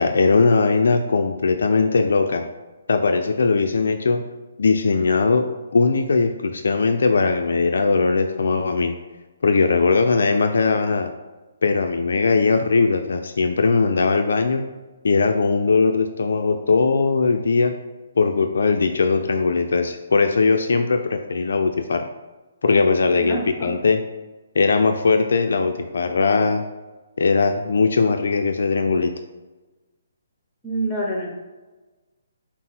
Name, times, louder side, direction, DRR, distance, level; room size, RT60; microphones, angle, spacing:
voice 1, 0.0-2.5 2.9-4.2 4.6-8.9 9.4-11.1 11.6-14.6 15.0-17.7 18.2-22.1 22.6-24.0 24.6-26.6 27.2-29.1, left 4 dB, 75° left, 6 dB, 0.3 m, -19 dB
voice 2, 23.1-23.7 30.6-31.3, right 1 dB, 15° left, -1 dB, 1.1 m, -27 dB
5.8 x 2.0 x 4.2 m, 1.2 s
hypercardioid pair, 145°, 0 cm